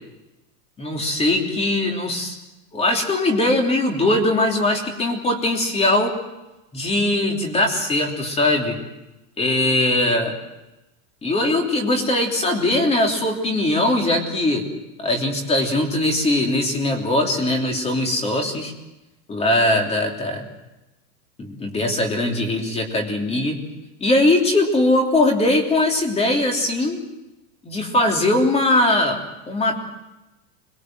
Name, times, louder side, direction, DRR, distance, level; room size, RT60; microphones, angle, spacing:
voice 1, 0.8-2.3 2.7-6.1 6.7-8.8 9.4-10.4 11.2-14.6 15.0-18.7 19.3-20.4 21.4-23.6 24.0-27.0 27.6-29.8, left 1 dB, 15° left, 2 dB, 3.2 m, -20 dB
25.0 x 21.5 x 7.7 m, 1.0 s
supercardioid pair, 155°, 48 cm